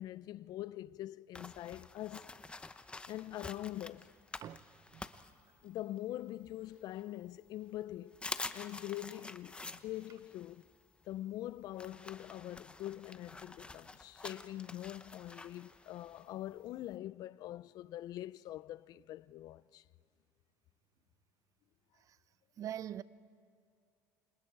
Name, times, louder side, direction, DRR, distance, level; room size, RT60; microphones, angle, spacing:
voice 1, 0.0-2.3 3.1-4.2 5.6-8.2 8.5-10.6 11.1-19.8, left 14 dB, 60° left, 0.5 m, -44 dB
sound 1, 1.3-6.0 6.4-7.4 7.8-7.9 8.1-16.9, left 3 dB, 15° left, 0.9 m, -48 dB
voice 2, 22.6-23.0, right 11 dB, 45° right, 0.7 m, -41 dB
29.5 x 27.0 x 4.7 m
cardioid pair, 115°, 8 cm